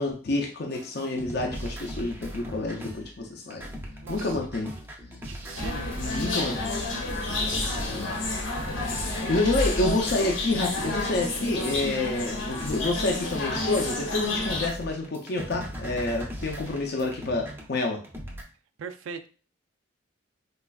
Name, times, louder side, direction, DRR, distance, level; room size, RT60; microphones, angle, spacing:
voice 1, 0.0-3.6 4.1-4.7 6.0-6.7 7.9-8.2 9.0-18.0, left 2 dB, 55° left, 1 dB, 0.5 m, -28 dB
sound 1, 0.7-18.4, equal, 10° right, 0.5 m, -39 dB
voice 2, 4.0-4.4 5.2-6.2 8.9-9.0 18.8-19.3, right 5 dB, 80° right, 10 dB, 0.4 m, -40 dB
sound 2, 5.6-14.7, left 2 dB, 75° left, 0.9 m, -30 dB
4.1 x 2.4 x 2.3 m, 0.37 s
head